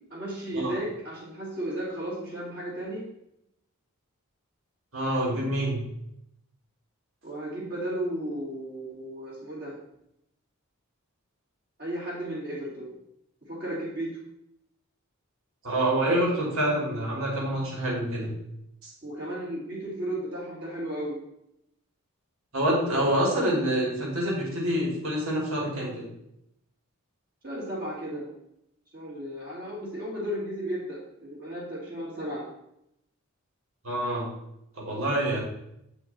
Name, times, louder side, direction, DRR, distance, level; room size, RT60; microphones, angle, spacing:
voice 1, 0.1-3.1 7.2-9.8 11.8-12.9 13.5-14.1 19.0-21.2 27.4-28.3 28.9-32.4, right 1 dB, 40° right, -11 dB, 2.7 m, -34 dB
voice 2, 4.9-5.8 15.6-18.3 18.8-18.9 22.5-26.0 33.8-34.3 34.8-35.4, right 1 dB, 65° right, -3 dB, 3.0 m, -26 dB
8.3 x 5.5 x 4.3 m, 0.79 s
head